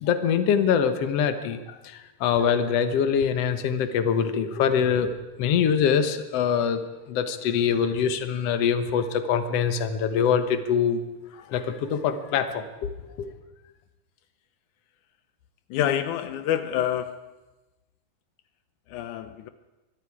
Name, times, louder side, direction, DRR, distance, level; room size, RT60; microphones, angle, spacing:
voice 1, 0.0-1.6 2.2-5.1 5.4-6.8 7.1-11.0 11.5-12.9 13.2-13.3, left 7 dB, 60° left, 9 dB, 2.2 m, -23 dB
voice 2, 15.7-17.2 18.9-19.5, left 10 dB, 80° left, 10 dB, 2.2 m, -27 dB
25.0 x 21.5 x 4.9 m, 1.1 s
omnidirectional pair, 3.5 m